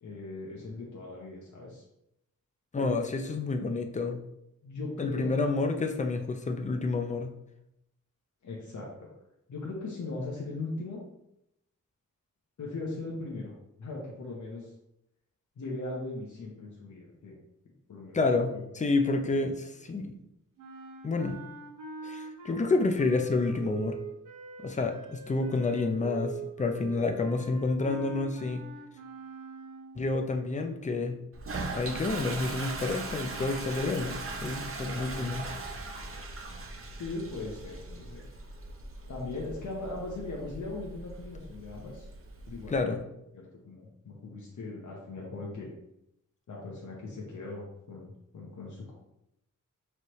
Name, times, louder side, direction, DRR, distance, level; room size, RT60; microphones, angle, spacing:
voice 1, 0.0-1.8 2.7-3.0 4.6-5.3 8.4-9.1 9.5-11.0 12.6-13.5 13.8-14.7 15.6-17.4 17.9-18.2 18.5-18.6 34.3-34.4 34.9-35.4 36.9-38.2 39.1-42.1 42.5-42.8 43.3-45.7 46.5-48.9, left 2 dB, 65° left, -3 dB, 0.9 m, -39 dB
voice 2, 2.7-4.2 5.0-7.3 18.1-20.1 21.0-21.4 22.0-24.0 24.6-28.7 30.0-31.2 31.7-35.5 42.7-43.0, left 3 dB, 25° left, 5 dB, 0.4 m, -29 dB
sound 1, 20.6-30.1, right 5 dB, 80° right, 0.9 m, -43 dB
Toilet flush, 31.3-42.8, right 3 dB, 45° right, 0.6 m, -40 dB
4.5 x 3.2 x 3.0 m, 0.83 s
wide cardioid pair, 130°, 32 cm